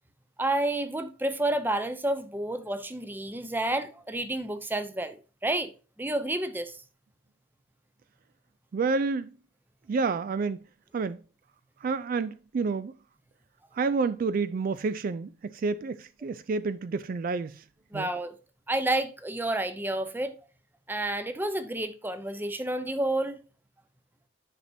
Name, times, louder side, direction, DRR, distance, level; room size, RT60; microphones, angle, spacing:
voice 1, 0.4-5.7 6.0-6.8 17.9-18.3 18.7-20.3 20.9-23.4, right 1 dB, 10° right, 0.6 m, -30 dB
voice 2, 8.7-9.3 9.9-10.6 10.9-11.2 11.8-13.0 13.7-17.6 17.9-18.1, right 4 dB, 45° right, 0.3 m, -29 dB
10.0 x 5.8 x 2.7 m
head